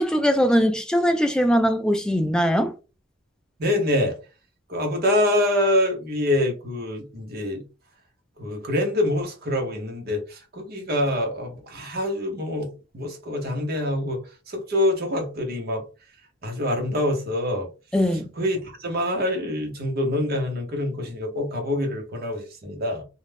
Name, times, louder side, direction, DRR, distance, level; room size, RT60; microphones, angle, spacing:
voice 1, 0.0-2.7 17.9-18.3, equal, 5° left, 0.3 m, -21 dB
voice 2, 3.6-4.2 4.7-7.6 8.4-12.7 12.9-14.2 14.5-15.8 16.4-17.7 18.1-23.0, left 1 dB, 50° right, 0.9 m, -25 dB
2.4 x 2.1 x 3.4 m
head